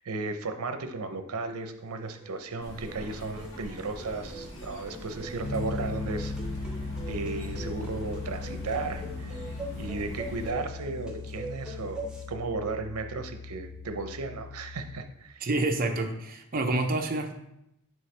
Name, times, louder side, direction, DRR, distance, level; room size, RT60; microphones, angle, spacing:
voice 1, 0.0-6.3 7.1-9.4 9.8-15.5, right 3 dB, 85° right, 8 dB, 0.7 m, -35 dB
sound 1, 1.6-12.2, right 1 dB, 5° right, 0.8 m, -43 dB
sound 2, 2.6-10.5, equal, 60° left, 1.5 m, -43 dB
Piano, 5.4-15.0, left 3 dB, 85° left, 0.7 m, -38 dB
voice 2, 15.4-17.3, right 2 dB, 40° right, 3 dB, 0.7 m, -28 dB
6.5 x 4.8 x 3.3 m, 0.82 s
head